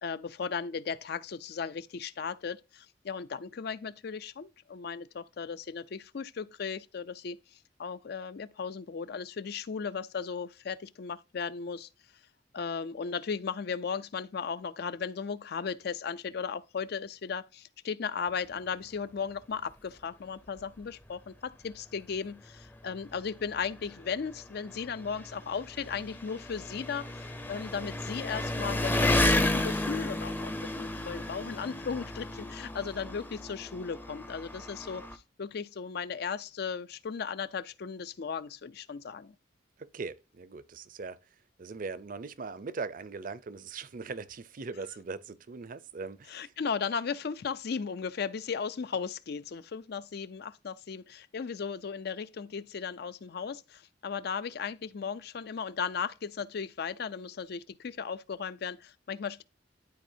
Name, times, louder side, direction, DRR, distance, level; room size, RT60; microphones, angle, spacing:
voice 1, 0.0-7.4 7.8-11.9 12.5-39.3 46.3-59.4, left 6 dB, 55° left, 0.4 m, -36 dB
Engine, 20.6-20.7 21.1-21.2 22.1-22.2 22.4-35.1, left 1 dB, 10° left, 0.6 m, -33 dB
voice 2, 39.8-41.2 41.6-46.5, right 4 dB, 45° right, 0.5 m, -40 dB
12.0 x 4.1 x 2.7 m
head